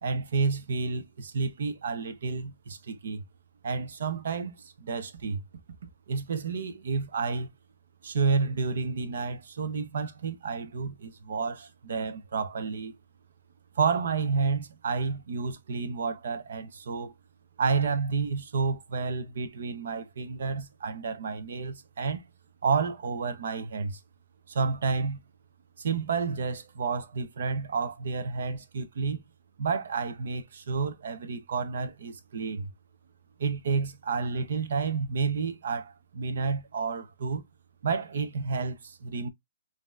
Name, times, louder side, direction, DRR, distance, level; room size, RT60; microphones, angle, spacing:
voice 1, 0.0-3.2 3.6-5.4 6.1-7.5 8.0-12.9 13.8-17.1 17.6-22.2 22.6-24.0 24.5-25.2 25.8-29.2 29.6-32.7 33.4-37.4 37.8-39.3, right 5 dB, 65° right, 0.8 m, -30 dB
5.3 x 2.8 x 2.4 m
hypercardioid pair, 165°, 0 cm